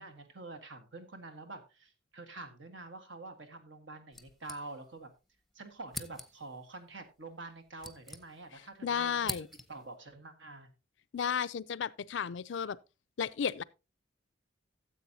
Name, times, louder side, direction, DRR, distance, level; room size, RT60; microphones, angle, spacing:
voice 1, 0.0-5.1 5.5-10.7, right 3 dB, 70° right, 1.5 m, -47 dB
sound 1, 4.1-5.1 5.4-5.5 5.9-6.6 7.4-8.7 8.9-9.9, left 2 dB, ahead, 0.7 m, -44 dB
voice 2, 8.8-9.5 11.1-12.8 13.2-13.6, left 7 dB, 65° left, 0.4 m, -33 dB
14.5 x 7.7 x 2.8 m
head